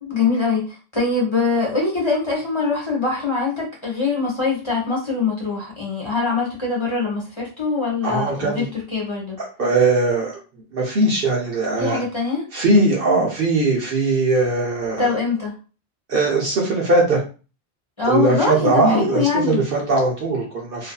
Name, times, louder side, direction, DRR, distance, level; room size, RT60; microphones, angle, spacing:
voice 1, 0.0-8.7 8.9-9.4 11.8-12.4 15.0-15.5 18.0-19.6, left 4 dB, 30° left, -4 dB, 0.8 m, -23 dB
voice 2, 8.0-8.7 9.6-10.4 10.7-12.0 12.5-15.1 16.1-17.2 18.1-20.9, right 2 dB, 55° right, -2 dB, 0.8 m, -20 dB
2.6 x 2.4 x 2.2 m, 0.34 s
omnidirectional pair, 1.2 m